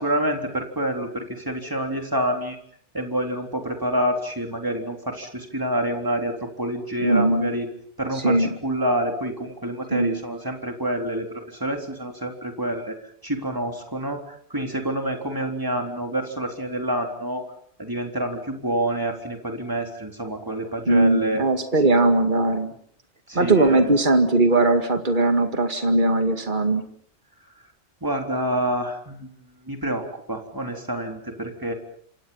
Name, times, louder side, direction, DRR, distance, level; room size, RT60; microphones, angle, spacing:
voice 1, 0.0-2.6 2.9-7.7 8.0-13.0 13.2-17.4 17.8-21.4 23.3-23.9 28.0-29.3 29.6-31.7, right 1 dB, 15° right, 3 dB, 3.8 m, -27 dB
voice 2, 7.0-7.5 8.2-8.5 9.9-10.2 20.9-22.7 23.3-26.8, right 2 dB, 40° right, 7 dB, 2.3 m, -19 dB
28.0 x 26.5 x 5.7 m, 0.64 s
omnidirectional pair, 1.2 m